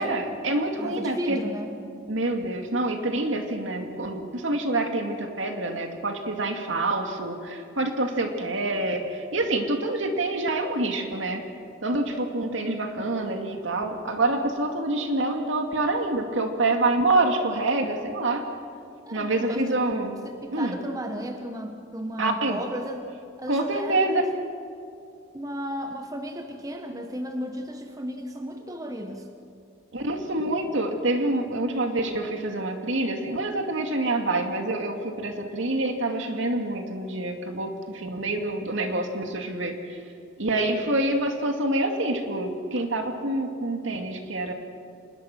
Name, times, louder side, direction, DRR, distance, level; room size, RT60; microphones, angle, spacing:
voice 1, 0.0-1.4 2.1-11.4 11.8-18.4 19.1-20.2 20.5-20.8 22.2-22.6 23.5-24.2 29.9-40.0 40.4-44.5, right 2 dB, 70° right, 4 dB, 2.4 m, -26 dB
voice 2, 0.8-1.7 19.1-19.8 20.2-23.1 23.4-24.3 25.3-29.3, equal, 15° right, 5 dB, 1.2 m, -34 dB
26.0 x 21.0 x 6.2 m, 2.5 s
head